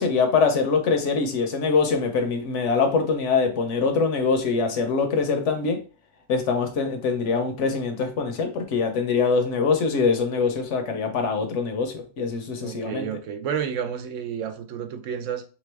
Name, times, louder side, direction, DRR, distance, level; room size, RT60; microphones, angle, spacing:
voice 1, 0.0-5.8 6.3-13.1, left 4 dB, 70° left, 1.0 m, -23 dB
voice 2, 12.6-15.4, right 8 dB, 80° right, 1.0 m, -30 dB
3.4 x 3.0 x 3.3 m
omnidirectional pair, 1.3 m